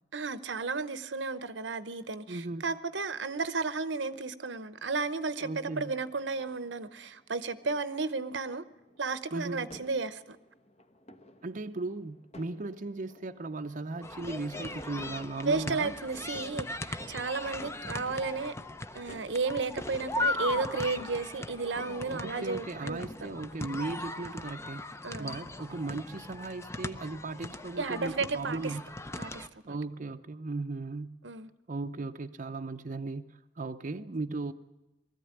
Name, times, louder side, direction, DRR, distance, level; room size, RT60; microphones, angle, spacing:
voice 1, 0.1-8.6 9.0-10.4 15.4-18.5 18.9-23.1 25.0-25.4 27.8-28.8 29.2-29.8 31.2-31.5, right 4 dB, 85° right, 0.9 m, -33 dB
voice 2, 2.3-2.6 5.4-5.9 9.3-9.8 11.4-15.9 22.1-24.9 25.2-28.8 29.7-31.2 31.7-34.5, right 3 dB, 45° right, 0.6 m, -37 dB
sound 1, 5.0-22.8, left 1 dB, 40° left, 1.2 m, -53 dB
sound 2, 14.0-29.5, left 2 dB, 15° left, 0.7 m, -38 dB
20.0 x 14.5 x 9.7 m
head